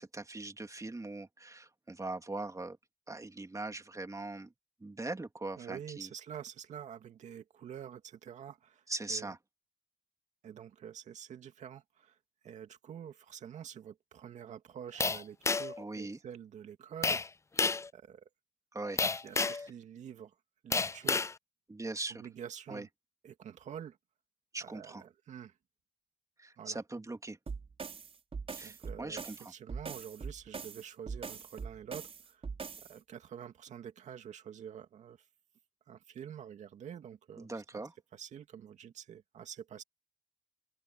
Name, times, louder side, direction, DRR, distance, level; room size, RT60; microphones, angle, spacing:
voice 1, 0.0-2.8 3.1-4.5 4.8-6.1 8.9-9.4 15.8-16.2 18.7-19.0 19.5-19.6 21.7-22.2 22.7-22.9 24.5-25.0 26.4-27.4 28.5-29.5 37.4-37.9, right 2 dB, 25° right, 3.4 m, -41 dB
voice 2, 5.6-9.3 10.4-12.2 12.4-17.2 17.9-18.3 19.2-20.4 20.6-21.3 22.1-22.9 23.2-24.0 24.6-25.6 26.6-26.8 28.6-29.2 29.5-32.4 32.8-35.3 35.9-37.8 38.1-39.8, right 9 dB, 80° right, 2.2 m, -47 dB
sound 1, 15.0-15.8 17.0-17.3 17.6-17.9 19.0-19.7 20.7-21.3, left 4 dB, 25° left, 0.4 m, -30 dB
sound 2, 27.5-32.9, right 5 dB, 55° right, 6.2 m, -42 dB
open air
supercardioid pair, 45°, 12 cm